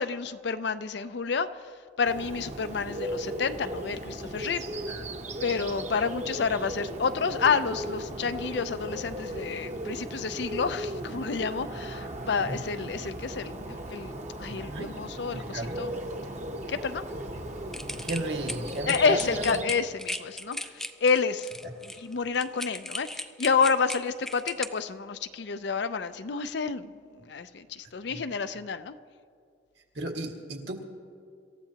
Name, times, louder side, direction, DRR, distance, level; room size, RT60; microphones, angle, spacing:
voice 1, 0.0-4.7 5.4-15.9 16.7-17.0 18.8-21.5 21.8-28.9, left 5 dB, 65° left, 11 dB, 0.5 m, -29 dB
Bird, 2.0-19.6, right 1 dB, 40° right, 1.0 m, -37 dB
voice 2, 14.5-14.9 15.3-15.8 17.9-19.6 29.9-30.8, right 1 dB, 65° right, 1 dB, 1.9 m, -34 dB
sound 1, 17.7-24.7, left 1 dB, ahead, 0.4 m, -37 dB
26.0 x 14.5 x 2.9 m, 2.3 s
head